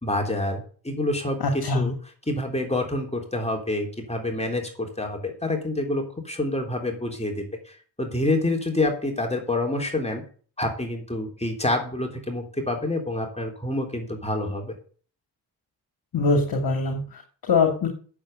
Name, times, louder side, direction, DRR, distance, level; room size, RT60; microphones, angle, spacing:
voice 1, 0.0-1.4 1.7-1.9 2.3-10.2 10.6-14.7, left 1 dB, 15° left, 2 dB, 3.5 m, -27 dB
voice 2, 1.4-1.9 16.1-17.9, left 3 dB, 55° left, 4 dB, 2.5 m, -23 dB
8.8 x 7.4 x 8.0 m, 0.43 s
supercardioid pair, 45°, 45 cm